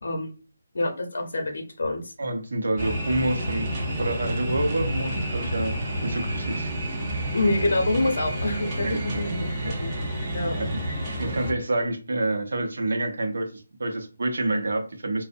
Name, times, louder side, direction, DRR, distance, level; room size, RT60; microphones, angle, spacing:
voice 1, 0.0-0.4 0.7-2.1 7.3-9.4 9.8-9.9 10.3-10.6, left 2 dB, 60° left, 4 dB, 0.7 m, -26 dB
voice 2, 2.2-3.7 4.0-5.7 6.0-6.7 8.8-9.2 9.6-9.8 10.6-10.8 11.2-15.2, right 1 dB, 65° right, 5 dB, 0.5 m, -28 dB
sound 1, 2.8-11.5, right 1 dB, 15° right, 0.5 m, -29 dB
2.5 x 2.0 x 2.5 m, 0.34 s
hypercardioid pair, 175°, 0 cm